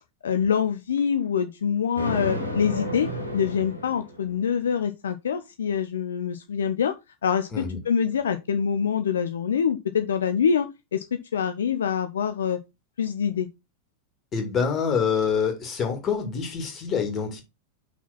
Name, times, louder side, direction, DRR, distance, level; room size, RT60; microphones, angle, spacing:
voice 1, 0.2-6.9 7.2-12.6 13.0-13.5, left 7 dB, 65° left, 0.5 m, -25 dB
Thunder, 2.0-4.5, equal, 90° left, 1.9 m, -32 dB
voice 2, 14.3-17.4, left 6 dB, 25° left, 2.4 m, -26 dB
5.8 x 4.3 x 5.8 m
figure-of-eight pair, 90°, 0 cm